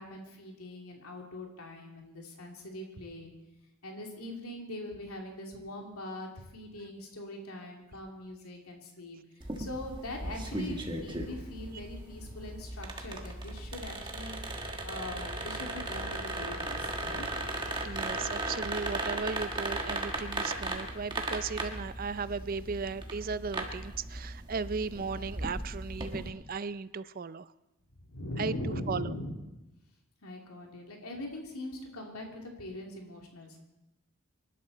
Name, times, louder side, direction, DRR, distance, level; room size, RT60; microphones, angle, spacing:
voice 1, 0.0-3.3 3.8-9.2 9.6-14.4 14.6-17.3 28.1-29.3 30.2-33.6, left 1 dB, 85° left, 1 dB, 2.7 m, -41 dB
sound 1, 9.4-26.3, right 2 dB, 20° right, 1.5 m, -37 dB
sound 2, 13.7-18.9, left 1 dB, 10° left, 2.1 m, -58 dB
voice 2, 17.8-27.5 28.4-29.1, right 5 dB, 40° right, 16 dB, 0.4 m, -36 dB
25.5 x 12.0 x 4.1 m, 0.96 s
head